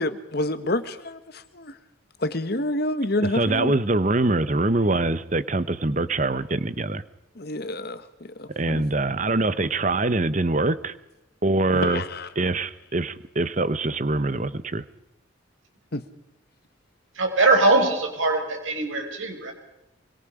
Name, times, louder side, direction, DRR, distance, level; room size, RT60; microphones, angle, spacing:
voice 1, 0.0-1.8 2.2-3.7 7.3-8.8 11.7-12.3 15.9-16.0, left 1 dB, 50° left, 12 dB, 1.4 m, -28 dB
voice 2, 3.3-7.0 8.6-11.0 11.4-12.0 12.4-14.8, right 2 dB, 40° right, 14 dB, 1.0 m, -24 dB
voice 3, 17.2-19.5, right 2 dB, 80° right, 3 dB, 6.0 m, -21 dB
25.5 x 24.5 x 5.1 m, 0.91 s
head